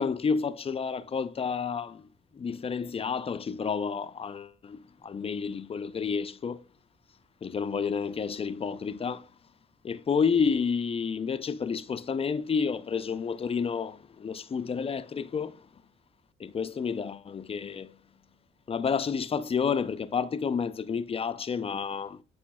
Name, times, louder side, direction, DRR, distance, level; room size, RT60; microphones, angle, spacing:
voice 1, 0.0-2.1 2.3-6.6 7.4-9.3 9.8-15.6 16.4-17.9 18.7-22.2, left 6 dB, 30° left, 0.4 m, -30 dB
8.4 x 4.9 x 2.2 m
cardioid pair, 90°, 20 cm